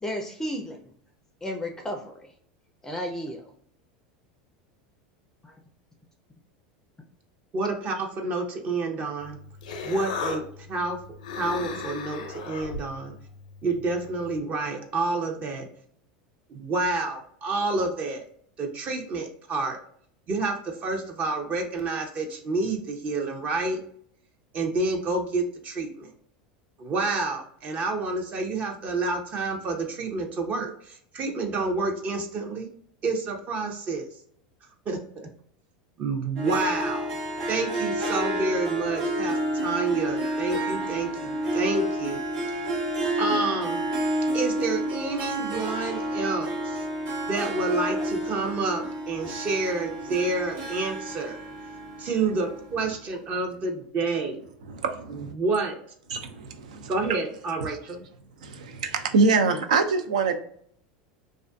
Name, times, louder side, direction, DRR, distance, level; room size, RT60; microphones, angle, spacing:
voice 1, 0.0-0.9 1.4-2.3 2.8-3.5 5.4-5.5, equal, 10° left, 3 dB, 0.4 m, -33 dB
voice 2, 7.5-9.4 9.8-10.4 10.7-11.0 11.4-13.1 13.6-15.7 16.5-18.2 18.6-19.8 20.3-23.8 24.5-26.1 26.8-32.7 33.0-34.1 34.9-35.3 36.0-37.1 37.5-42.2 43.2-43.8 44.3-46.8 47.3-51.4 52.0-54.4 55.1-55.8 56.9-58.0, right 3 dB, 40° right, 3 dB, 0.6 m, -29 dB
Human voice, 9.2-14.4, left 4 dB, 85° left, 0.5 m, -37 dB
Harp, 36.3-52.8, right 1 dB, 65° right, 1.0 m, -30 dB
voice 3, 54.7-55.3 56.1-56.9 57.7-57.8 58.4-60.3, right 4 dB, 85° right, 7 dB, 0.4 m, -25 dB
2.5 x 2.4 x 2.2 m, 0.63 s
supercardioid pair, 105°, 4 cm